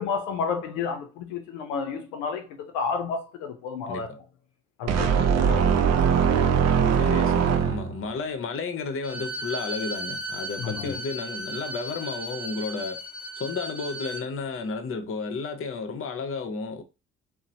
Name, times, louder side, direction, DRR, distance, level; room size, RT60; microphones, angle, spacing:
voice 1, 0.0-4.2 4.8-6.4 10.6-10.9, left 5 dB, 80° left, 0.5 m, -32 dB
sound 1, 4.9-8.1, right 7 dB, 45° right, 0.5 m, -21 dB
voice 2, 7.0-13.0 13.4-16.8, left 4 dB, 35° left, 0.7 m, -32 dB
Bowed string instrument, 9.0-14.2, right 1 dB, 5° right, 0.8 m, -35 dB
2.9 x 2.0 x 2.7 m
hypercardioid pair, 50°, 36 cm